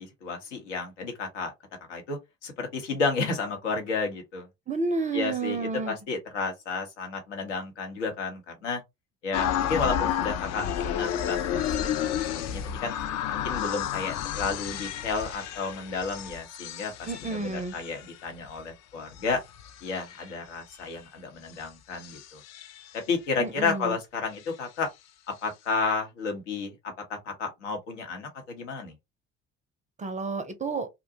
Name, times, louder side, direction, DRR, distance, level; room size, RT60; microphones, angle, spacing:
voice 1, 0.0-1.5 1.9-4.5 5.1-8.8 9.2-13.0 13.3-19.4 19.8-22.4 22.9-24.9 25.4-26.7 27.1-28.9, left 4 dB, 80° left, 0.9 m, -32 dB
voice 2, 4.7-5.9 17.1-17.7 23.4-24.0 30.0-30.9, right 3 dB, 20° right, 0.5 m, -30 dB
sound 1, 9.3-18.5 19.1-20.3 21.6-21.7 21.9-22.9, left 9 dB, 50° left, 0.5 m, -31 dB
2.5 x 2.1 x 2.7 m
hypercardioid pair, 55°, 36 cm